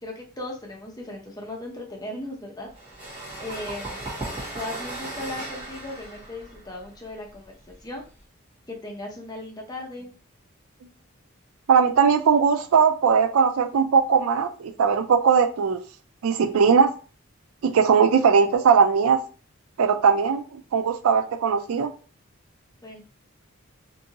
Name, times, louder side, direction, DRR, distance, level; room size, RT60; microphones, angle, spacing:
voice 1, 0.0-2.7 3.4-4.1 4.5-8.0 8.7-10.1 22.8-23.0, left 1 dB, 20° left, 0.6 m, -37 dB
sound 1, 2.7-8.2, right 2 dB, 25° right, 1.2 m, -37 dB
voice 2, 11.7-15.8 16.2-16.9 17.6-19.2 19.8-21.9, right 6 dB, 90° right, 0.4 m, -19 dB
2.6 x 2.6 x 2.8 m
head